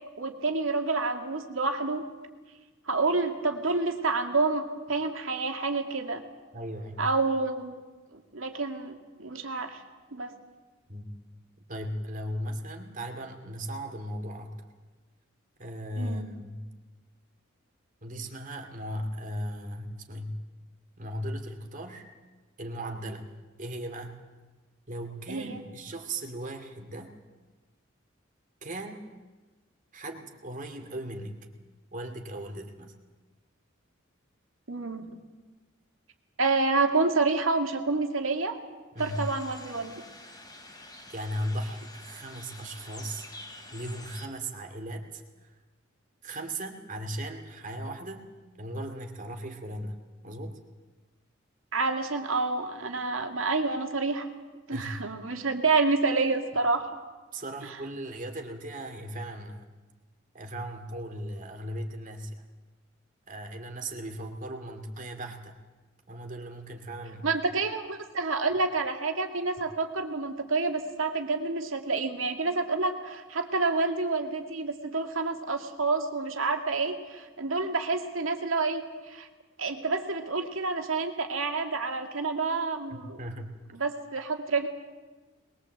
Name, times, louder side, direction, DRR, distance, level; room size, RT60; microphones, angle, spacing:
voice 1, 0.2-2.0 2.9-6.2 7.0-7.8 8.1-9.8 10.1-10.3 16.0-16.3 25.3-25.6 34.7-35.0 36.4-38.6 39.0-39.9 51.7-54.3 54.7-57.0 67.2-79.3 79.6-83.2 83.7-84.7, right 3 dB, 80° right, 4 dB, 2.3 m, -28 dB
voice 2, 6.5-7.1 10.9-11.2 11.7-14.6 15.6-16.7 18.0-20.4 21.0-22.1 22.6-23.3 23.6-24.2 24.9-27.1 28.6-29.0 29.9-31.5 31.9-32.9 38.9-39.3 41.1-43.3 43.7-45.5 46.2-48.3 48.6-50.6 54.7-55.0 57.3-59.6 60.3-62.4 63.3-65.6 66.1-67.3 82.9-83.5, right 1 dB, 40° right, 4 dB, 2.4 m, -37 dB
sound 1, 39.0-44.3, left 2 dB, 20° left, 2.8 m, -47 dB
21.5 x 21.5 x 7.9 m, 1.3 s
head